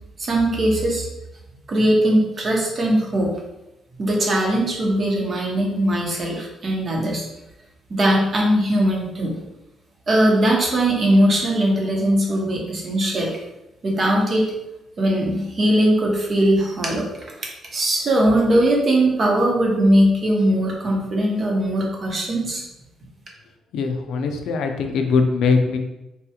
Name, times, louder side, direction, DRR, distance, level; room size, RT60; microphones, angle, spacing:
voice 1, 0.2-1.1 1.7-3.3 4.0-7.2 7.9-9.4 10.1-13.3 13.8-14.5 15.0-17.1 17.7-22.6, right 1 dB, 45° right, -1 dB, 0.9 m, -20 dB
voice 2, 23.7-25.8, left 4 dB, 80° left, 5 dB, 0.4 m, -21 dB
3.4 x 2.3 x 2.8 m, 0.93 s
cardioid pair, 90°, 0 cm